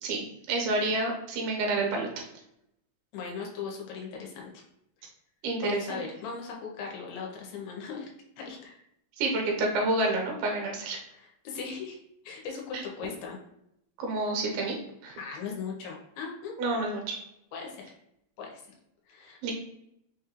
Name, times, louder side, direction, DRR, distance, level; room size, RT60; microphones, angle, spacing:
voice 1, 0.0-2.1 5.4-6.0 9.2-11.0 12.7-12.8 14.0-14.8 15.0-15.2 16.6-17.2 19.4-19.5, right 2 dB, 85° right, 1 dB, 2.7 m, -29 dB
voice 2, 3.1-4.5 5.6-8.1 8.4-8.8 11.1-12.0 12.2-13.4 15.2-16.5 17.5-17.8 18.4-18.6 19.1-19.5, left 5 dB, 90° left, -1 dB, 2.6 m, -38 dB
5.9 x 2.4 x 3.0 m, 0.79 s
omnidirectional pair, 4.3 m